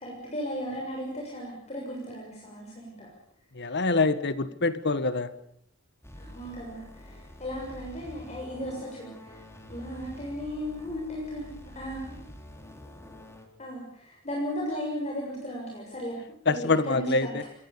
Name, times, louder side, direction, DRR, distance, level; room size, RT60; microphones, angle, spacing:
voice 1, 0.0-3.1 6.1-9.4 9.7-12.2 13.6-16.2 16.5-17.3, equal, 35° left, -2 dB, 7.0 m, -36 dB
voice 2, 3.5-5.3 16.4-17.4, left 3 dB, 55° left, 13 dB, 1.5 m, -25 dB
sound 1, 6.0-13.5, left 1 dB, 15° left, 4.0 m, -47 dB
27.0 x 22.5 x 7.0 m, 0.68 s
head